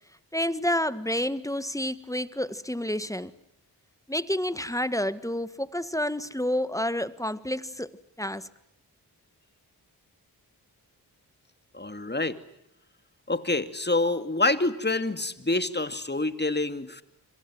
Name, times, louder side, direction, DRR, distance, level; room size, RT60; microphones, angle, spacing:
voice 1, 0.3-3.3 4.1-7.9 8.2-8.5, left 1 dB, 10° left, 1.6 m, -29 dB
voice 2, 11.7-12.4 13.3-17.0, left 2 dB, 25° left, 2.6 m, -27 dB
26.5 x 26.0 x 7.7 m
cardioid pair, 45°, 40 cm